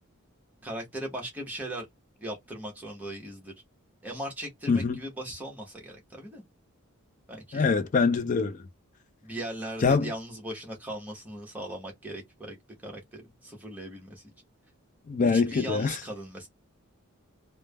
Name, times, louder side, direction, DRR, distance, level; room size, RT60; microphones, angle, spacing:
voice 1, 0.6-1.9 2.2-3.5 4.0-6.4 7.3-7.6 9.2-12.6 12.8-14.2 15.2-16.5, right 1 dB, 10° right, 0.9 m, -38 dB
voice 2, 4.7-5.0 7.5-8.6 9.8-10.1 15.1-16.0, left 4 dB, 35° left, 0.4 m, -24 dB
3.2 x 2.1 x 2.2 m
head